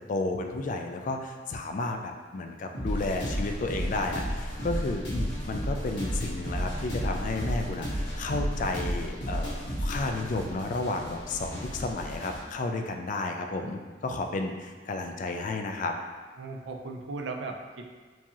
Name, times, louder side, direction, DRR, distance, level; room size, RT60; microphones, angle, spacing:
voice 1, 0.0-15.9, left 2 dB, 45° left, 4 dB, 0.3 m, -32 dB
sound 1, 2.7-12.4, equal, 80° left, 1.4 m, -33 dB
voice 2, 16.4-17.9, right 3 dB, 80° right, 2 dB, 0.4 m, -37 dB
4.5 x 2.7 x 2.8 m, 1.4 s
head